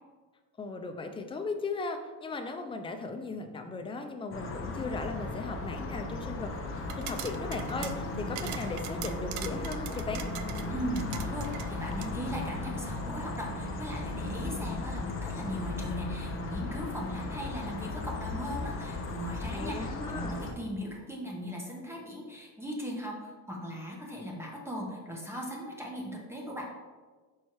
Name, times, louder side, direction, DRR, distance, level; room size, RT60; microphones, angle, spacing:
voice 1, 0.6-6.5 7.0-10.2 19.5-20.3, left 3 dB, 15° left, 5 dB, 0.4 m, -37 dB
sound 1, 4.3-20.5, left 2 dB, 35° left, 0.8 m, -36 dB
sound 2, 6.8-12.1, right 11 dB, 85° right, 0.6 m, -43 dB
voice 2, 10.7-26.6, equal, 5° right, -1 dB, 1.0 m, -38 dB
5.4 x 4.8 x 4.5 m, 1.4 s
cardioid pair, 145°, 39 cm